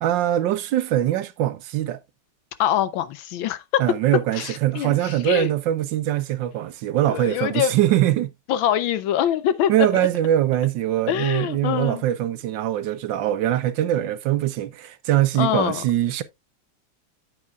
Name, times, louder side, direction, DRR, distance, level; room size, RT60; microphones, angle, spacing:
voice 1, 0.0-2.0 3.8-8.3 9.7-16.2, right 13 dB, 75° right, 1.3 m, -22 dB
voice 2, 2.6-3.8 4.3-5.5 7.1-7.7 8.5-10.1 11.1-12.0 15.4-15.8, left 11 dB, 80° left, 1.4 m, -24 dB
9.0 x 8.5 x 2.3 m
omnidirectional pair, 2.1 m